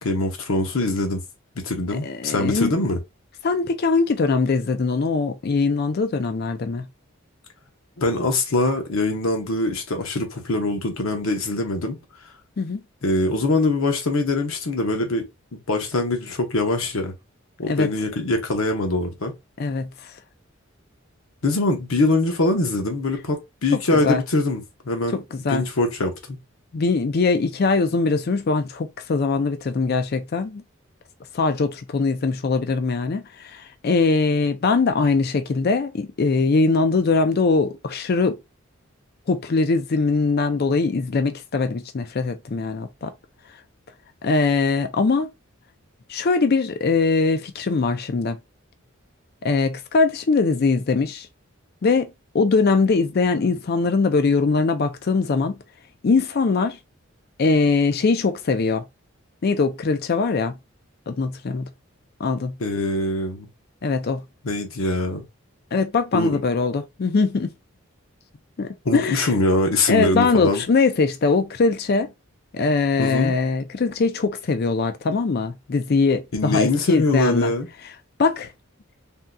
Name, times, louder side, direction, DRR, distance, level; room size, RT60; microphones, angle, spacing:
voice 1, 0.0-1.2 1.6-3.0 8.0-12.0 13.0-15.3 15.5-17.1 17.6-19.3 21.4-25.2 25.5-26.4 62.6-63.5 64.4-65.2 66.1-66.4 68.8-70.6 73.0-73.3 76.3-77.7, left 2 dB, 80° left, 0.8 m, -23 dB
voice 2, 2.0-2.7 3.4-6.9 12.6-12.8 17.7-17.9 19.6-19.9 24.0-24.2 25.1-25.7 26.7-30.6 31.3-38.4 39.3-43.1 44.2-45.3 46.1-48.4 49.4-51.3 51.8-52.1 52.3-55.6 56.0-56.8 57.4-58.8 59.4-60.5 61.1-61.7 62.2-62.5 63.8-64.2 65.7-67.5 68.6-69.3 69.9-72.1 72.5-77.5 78.2-78.5, left 4 dB, 50° left, 0.4 m, -21 dB
3.6 x 2.7 x 2.2 m
head